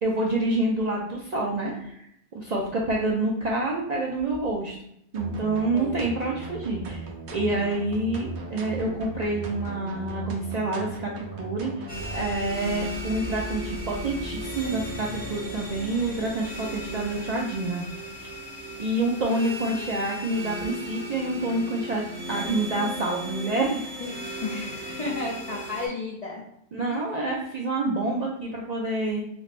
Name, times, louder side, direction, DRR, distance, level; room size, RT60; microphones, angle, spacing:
voice 1, 0.0-2.1 2.3-4.8 5.1-7.1 7.3-11.8 12.1-17.8 18.8-22.0 22.3-23.8 26.7-29.2, right 2 dB, 55° right, -2 dB, 0.4 m, -27 dB
sound 1, 5.1-12.2, right 3 dB, 80° right, 0.9 m, -37 dB
sound 2, 11.9-25.9, equal, 10° left, 0.8 m, -36 dB
voice 2, 24.0-26.4 26.9-27.0, left 3 dB, 50° left, -4 dB, 0.4 m, -33 dB
3.1 x 3.1 x 2.4 m, 0.74 s
omnidirectional pair, 1.1 m